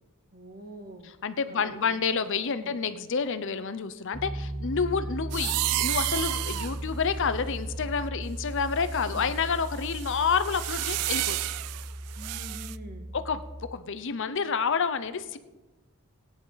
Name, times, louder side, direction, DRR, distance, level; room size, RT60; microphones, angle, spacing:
voice 1, 0.3-1.1 1.5-2.0 2.5-2.8 9.0-9.3 12.1-13.1, right 1 dB, 40° right, 4 dB, 1.7 m, -45 dB
voice 2, 1.0-11.4 13.1-13.4 13.7-15.4, left 5 dB, 55° left, 12 dB, 0.6 m, -29 dB
Piano, 4.1-13.7, right 1 dB, 20° right, 0.7 m, -37 dB
sound 1, 5.3-8.2 8.8-12.8, right 16 dB, 90° right, 0.4 m, -32 dB
17.0 x 9.9 x 4.0 m, 1.1 s
head